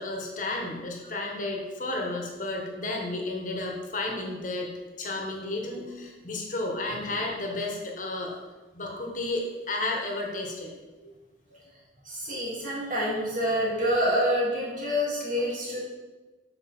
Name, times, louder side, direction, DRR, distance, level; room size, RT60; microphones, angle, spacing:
voice 1, 0.0-4.7 5.0-8.4 8.7-10.7, left 2 dB, 45° left, 0 dB, 1.4 m, -32 dB
voice 2, 12.0-15.8, equal, 45° right, -5 dB, 3.0 m, -27 dB
8.7 x 6.5 x 4.4 m, 1.2 s
head